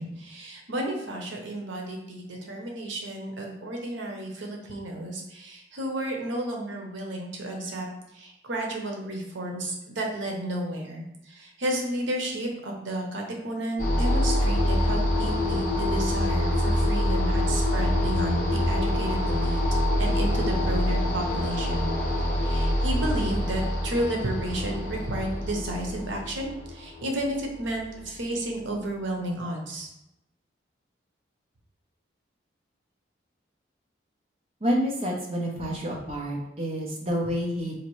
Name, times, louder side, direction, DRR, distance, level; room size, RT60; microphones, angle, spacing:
voice 1, 0.0-7.9 8.1-19.6 20.0-21.9 22.4-29.9, right 1 dB, 90° right, 1 dB, 0.8 m, -32 dB
sound 1, 13.8-27.9, left 1 dB, 45° left, 0.8 m, -25 dB
voice 2, 34.6-37.7, equal, 35° right, -3 dB, 0.7 m, -28 dB
4.2 x 2.6 x 3.1 m, 0.87 s
head